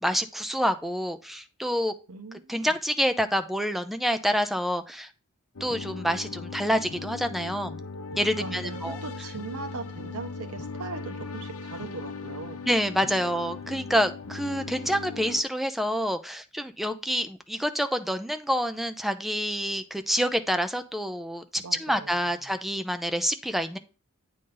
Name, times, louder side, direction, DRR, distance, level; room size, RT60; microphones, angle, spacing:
voice 1, 0.0-1.9 2.5-5.1 5.6-7.8 8.2-9.0 12.7-23.8, equal, ahead, 0.4 m, -27 dB
voice 2, 2.1-2.8 8.4-12.7 21.6-22.4, right 3 dB, 75° right, 1.1 m, -40 dB
sound 1, 5.6-15.4, left 4 dB, 70° left, 0.7 m, -38 dB
8.8 x 3.9 x 3.8 m
head